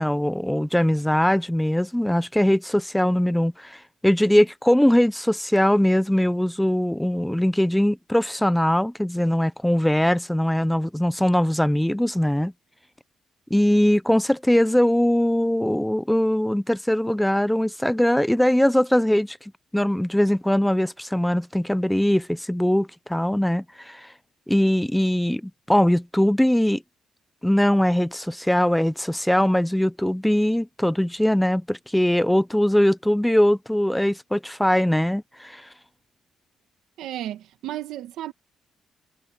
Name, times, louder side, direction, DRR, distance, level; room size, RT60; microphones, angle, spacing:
voice 1, 0.0-12.5 13.5-19.4 19.7-24.1 24.5-26.8 27.4-35.7, left 1 dB, 5° left, 0.5 m, -21 dB
voice 2, 37.0-38.3, right 13 dB, 85° right, 1.7 m, -33 dB
cardioid pair, 90°, 0 cm